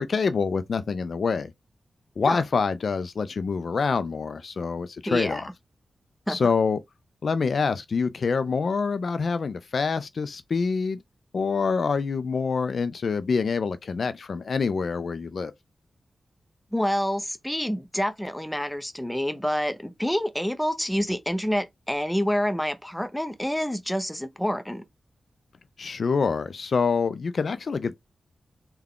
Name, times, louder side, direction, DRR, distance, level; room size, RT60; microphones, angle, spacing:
voice 1, 0.0-1.5 2.2-5.4 6.3-6.8 7.2-11.0 11.3-15.5 25.8-28.0, left 5 dB, 60° left, 0.3 m, -26 dB
voice 2, 5.1-5.5 6.3-6.4 16.7-24.8, equal, 5° left, 0.6 m, -27 dB
3.5 x 2.2 x 3.6 m
wide cardioid pair, 90°, 0 cm